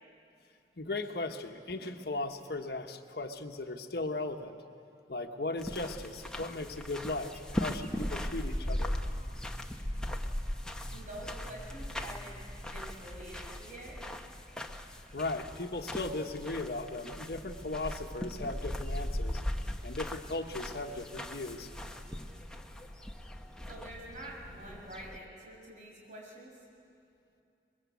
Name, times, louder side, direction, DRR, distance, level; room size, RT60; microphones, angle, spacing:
voice 1, 0.8-4.6 5.1-9.0 15.1-19.4 19.8-21.7, left 2 dB, 60° left, 5 dB, 1.2 m, -37 dB
sound 1, 5.6-25.2, left 1 dB, 5° left, 1.0 m, -39 dB
voice 2, 10.9-12.4 12.6-13.9 23.7-26.5, right 1 dB, 45° right, -3 dB, 6.5 m, -47 dB
23.5 x 22.0 x 8.3 m, 2.6 s
head